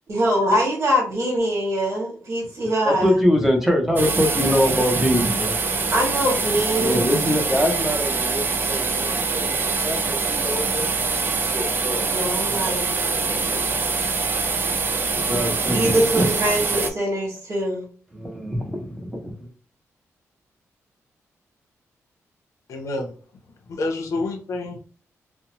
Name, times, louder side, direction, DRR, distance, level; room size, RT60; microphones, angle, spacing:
voice 1, 0.1-3.2 5.9-7.4 12.1-13.7 15.7-17.8, equal, 55° right, -2 dB, 1.3 m, -23 dB
voice 2, 2.8-5.6 6.8-10.9 11.2-12.2 15.3-16.3 18.1-19.5, equal, 5° right, 1 dB, 0.7 m, -23 dB
sound 1, 4.0-16.9, right 4 dB, 40° right, 0.3 m, -24 dB
voice 3, 22.7-23.1 23.7-24.8, left 2 dB, 70° left, 2 dB, 0.6 m, -28 dB
2.8 x 2.1 x 2.9 m, 0.41 s
wide cardioid pair, 130°, 6 cm